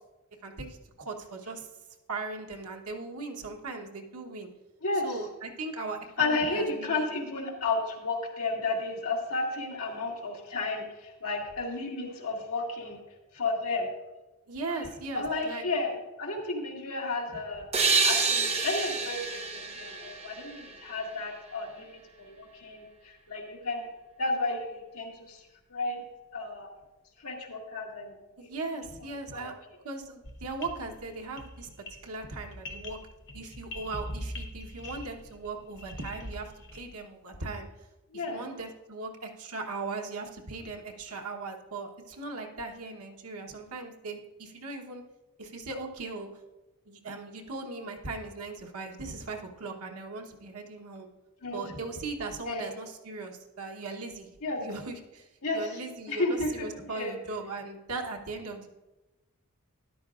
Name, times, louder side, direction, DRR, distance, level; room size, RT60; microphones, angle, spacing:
voice 1, 0.4-1.7 2.1-4.5 5.0-7.1 14.5-15.6 28.4-29.5 29.8-31.7 32.0-33.0 33.3-37.7 38.1-45.0 45.4-46.3 46.9-51.1 51.5-54.3 54.6-55.3 55.5-58.7, right 3 dB, 85° right, 3 dB, 1.1 m, -38 dB
voice 2, 6.2-13.0 13.3-13.9 15.1-15.9 16.2-23.9 24.2-25.4 25.7-26.0 26.3-26.7 27.2-28.1 28.4-28.5 29.3-29.5 38.1-38.4 51.4-51.6 51.9-52.0 52.5-52.7 54.4-54.6 55.4-55.6 56.1-56.5 56.8-57.1, left 3 dB, 80° left, -1 dB, 1.8 m, -32 dB
sound 1, 17.7-21.2, right 4 dB, 25° right, 0.7 m, -28 dB
sound 2, 30.2-37.0, left 1 dB, 50° left, 0.9 m, -43 dB
13.0 x 10.5 x 2.5 m, 1.1 s
head